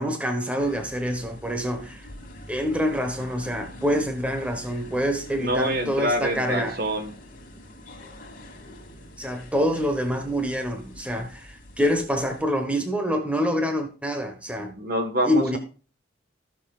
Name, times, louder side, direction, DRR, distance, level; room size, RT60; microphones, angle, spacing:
voice 1, 0.0-2.1 2.5-6.8 9.2-14.8 15.2-15.6, equal, 5° right, 1.2 m, -26 dB
sound 1, 0.6-12.4, left 1 dB, 45° left, 2.6 m, -44 dB
voice 2, 5.4-7.1 14.8-15.6, right 1 dB, 50° right, 1.4 m, -26 dB
15.0 x 7.0 x 2.4 m
head